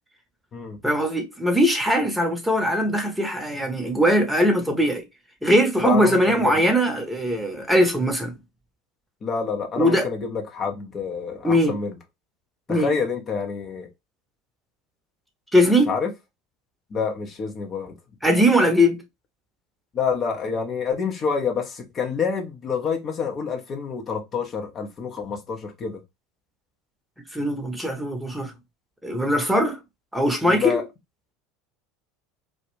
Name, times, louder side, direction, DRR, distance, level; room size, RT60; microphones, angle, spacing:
voice 1, 0.8-5.0 5.4-8.3 9.8-10.1 11.4-11.7 12.7-12.9 15.5-15.9 18.2-19.0 27.3-28.5 29.0-29.8 30.1-30.8, equal, 5° right, 0.8 m, -20 dB
voice 2, 5.8-6.6 9.2-11.9 12.7-13.9 15.9-16.1 16.9-17.9 19.9-26.0 30.5-30.8, left 6 dB, 35° left, 0.6 m, -27 dB
2.3 x 2.1 x 2.9 m
hypercardioid pair, 75°, 0 cm